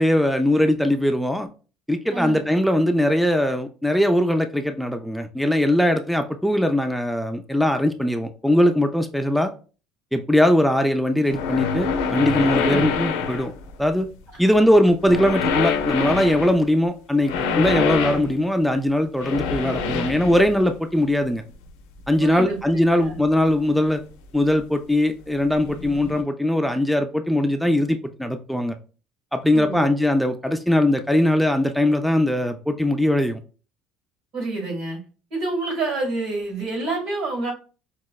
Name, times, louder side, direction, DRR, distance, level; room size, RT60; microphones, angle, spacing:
voice 1, 0.0-1.5 1.9-9.5 10.1-13.5 13.8-14.1 14.4-21.4 22.1-24.0 24.3-28.8 29.3-33.4, left 1 dB, ahead, 6 dB, 0.3 m, -20 dB
voice 2, 2.1-2.4 12.6-13.0 14.5-14.6 22.2-22.6 22.9-23.2 29.5-29.9 34.3-35.0 35.3-37.5, right 2 dB, 75° right, 1 dB, 1.7 m, -28 dB
sound 1, 11.2-13.9 15.0-16.6 17.2-18.3 19.2-20.7 22.0-22.1 23.9-24.0 25.5-26.2, left 6 dB, 90° left, 0.4 m, -25 dB
4.6 x 2.0 x 2.2 m, 0.36 s
supercardioid pair, 85°, 0 cm